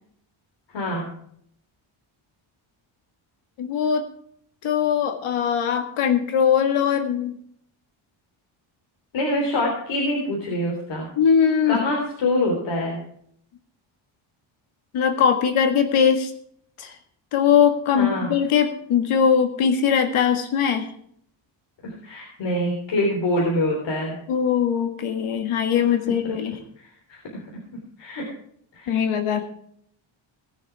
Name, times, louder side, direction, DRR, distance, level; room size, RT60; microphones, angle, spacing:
voice 1, 0.7-1.1 9.1-11.1 11.7-13.0 18.0-18.3 21.8-24.2 26.8-27.4 28.0-28.2 28.7-29.0, left 1 dB, 60° left, -1 dB, 3.7 m, -25 dB
voice 2, 3.6-4.1 4.6-7.4 11.2-11.8 14.9-16.3 16.8-17.0 17.3-20.9 24.3-26.6 28.9-29.4, left 7 dB, 80° left, 7 dB, 1.8 m, -21 dB
19.0 x 7.1 x 4.7 m, 0.65 s
cardioid pair, 155°, 49 cm